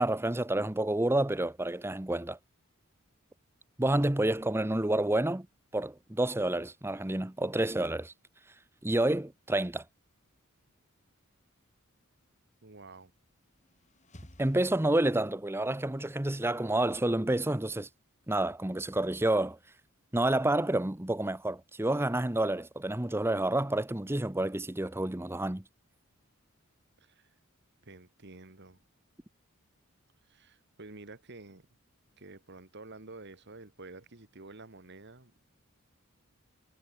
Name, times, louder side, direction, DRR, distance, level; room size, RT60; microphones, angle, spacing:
voice 1, 0.0-2.4 3.8-5.5 5.7-8.1 8.8-9.8 14.4-17.9 18.3-19.6 20.1-25.6, right 1 dB, 10° right, 0.8 m, -29 dB
voice 2, 12.6-13.1 27.0-27.3 27.8-28.8 30.2-31.7 32.2-35.4, right 2 dB, 55° right, 2.1 m, -50 dB
sound 1, 13.2-15.6, left 1 dB, 35° left, 4.3 m, -57 dB
head